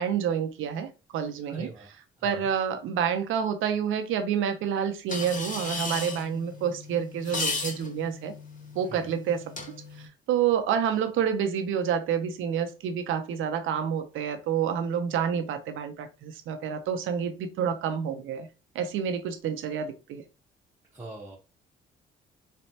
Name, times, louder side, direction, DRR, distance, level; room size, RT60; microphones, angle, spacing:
voice 1, 0.0-1.7 2.2-8.3 8.7-9.5 10.0-18.5 18.7-20.2, right 8 dB, 80° right, 7 dB, 0.7 m, -28 dB
voice 2, 1.5-2.5 8.9-9.1 20.9-21.4, right 2 dB, 15° right, -5 dB, 1.1 m, -43 dB
sound 1, 5.1-10.1, left 3 dB, 40° left, 1.5 m, -36 dB
4.1 x 3.3 x 2.8 m, 0.30 s
cardioid pair, 90°, 20 cm